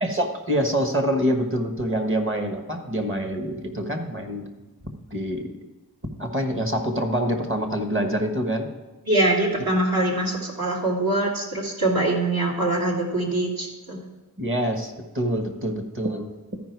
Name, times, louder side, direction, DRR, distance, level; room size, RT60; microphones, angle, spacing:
voice 1, 0.0-4.4 5.1-5.5 6.2-8.7 14.4-16.3, equal, 30° right, 5 dB, 1.5 m, -25 dB
voice 2, 9.1-14.0, right 2 dB, 60° right, -3 dB, 2.6 m, -23 dB
13.0 x 5.2 x 4.7 m, 1.2 s
wide cardioid pair, 60°, 39 cm